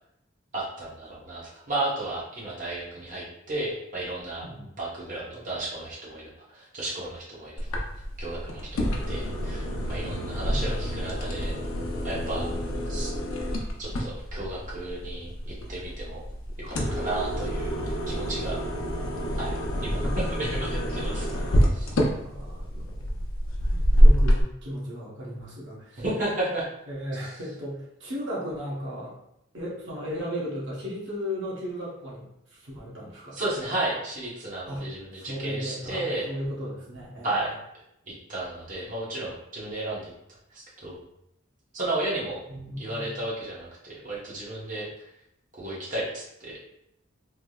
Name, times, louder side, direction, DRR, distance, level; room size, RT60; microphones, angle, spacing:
voice 1, 0.5-4.4 4.8-7.7 8.2-8.7 9.1-11.6 12.0-12.4 12.9-13.1 13.8-16.2 16.6-18.6 19.4-21.4 21.7-22.0 26.0-26.6 33.3-36.3 37.2-37.5 38.1-40.1 40.5-41.0 41.7-42.4 42.8-44.9 45.6-46.6, right 2 dB, 40° right, -6 dB, 1.0 m, -33 dB
sound 1, 7.6-24.4, equal, 85° left, 0.6 m, -26 dB
voice 2, 10.5-10.9 12.3-12.6 22.1-23.2 23.7-26.0 26.9-29.1 29.5-33.4 34.7-34.9 35.2-37.3 42.5-43.2, equal, 65° right, -6 dB, 1.1 m, -36 dB
3.3 x 2.7 x 2.3 m, 0.80 s
head